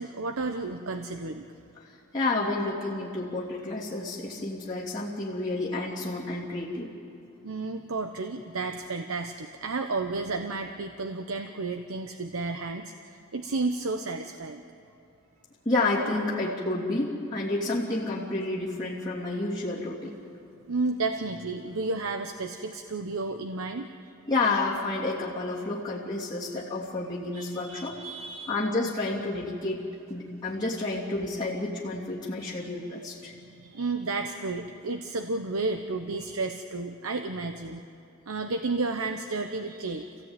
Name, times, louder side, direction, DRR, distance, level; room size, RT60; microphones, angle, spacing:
voice 1, 0.0-1.5 7.4-14.6 20.7-24.0 27.3-28.6 33.3-37.9 38.3-40.2, right 3 dB, 75° right, 6 dB, 0.9 m, -32 dB
voice 2, 2.1-6.9 15.6-20.1 24.3-27.9 28.5-29.8 30.1-33.3, left 2 dB, 20° left, -8 dB, 3.0 m, -30 dB
26.5 x 16.5 x 9.1 m, 2.6 s
head